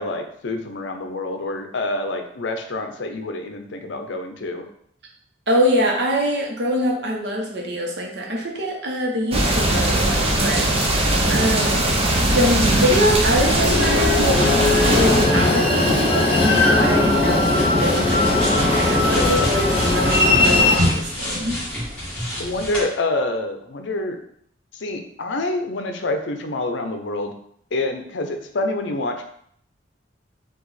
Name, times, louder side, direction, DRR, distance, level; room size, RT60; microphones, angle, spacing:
voice 1, 0.0-4.6 22.4-24.2 24.7-27.3 27.7-29.3, left 2 dB, 75° left, 5 dB, 0.6 m, -27 dB
voice 2, 5.5-11.8 12.2-21.6, equal, 60° right, 0 dB, 0.9 m, -24 dB
sound 1, 9.3-15.3, right 1 dB, 30° right, 0.7 m, -20 dB
Train, 13.4-20.8, left 2 dB, 30° left, 0.9 m, -18 dB
sound 2, 16.4-22.8, equal, 5° left, 1.7 m, -28 dB
4.8 x 2.4 x 4.0 m, 0.68 s
head